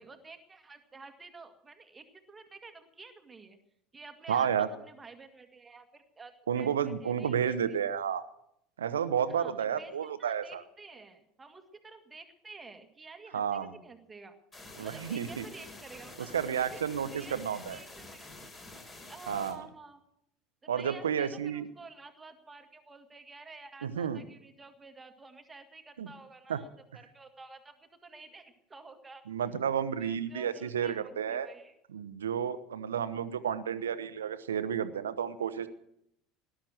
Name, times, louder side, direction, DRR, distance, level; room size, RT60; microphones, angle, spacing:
voice 1, 0.0-3.6 3.9-7.8 9.3-14.4 14.8-18.3 19.1-20.0 20.6-26.7 26.9-27.8 28.0-29.2 30.0-31.7, right 3 dB, 20° right, 6 dB, 1.9 m, -51 dB
voice 2, 4.3-4.7 6.5-8.2 8.8-10.6 13.3-13.7 14.8-15.4 16.3-17.8 19.3-19.6 20.7-21.7 23.8-24.2 26.0-26.1 26.5-26.6 29.3-31.5 31.9-35.7, right 8 dB, 75° right, 13 dB, 1.0 m, -31 dB
sound 1, 14.5-19.5, left 2 dB, 25° left, 5.7 m, -48 dB
19.0 x 11.5 x 6.5 m, 0.76 s
figure-of-eight pair, 70°, 0 cm